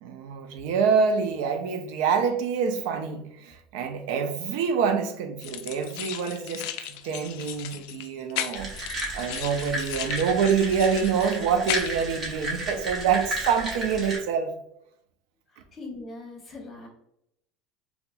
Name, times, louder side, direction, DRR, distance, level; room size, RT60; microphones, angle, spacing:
voice 1, 0.0-8.7 9.1-14.5, right 6 dB, 75° right, 0.5 m, -26 dB
sound 1, 5.4-12.1, left 12 dB, 70° left, 0.3 m, -36 dB
sound 2, 8.5-14.2, right 1 dB, 25° right, 1.1 m, -33 dB
voice 2, 15.5-16.9, left 2 dB, 25° left, 0.9 m, -41 dB
3.9 x 2.9 x 2.2 m
cardioid pair, 165°, 0 cm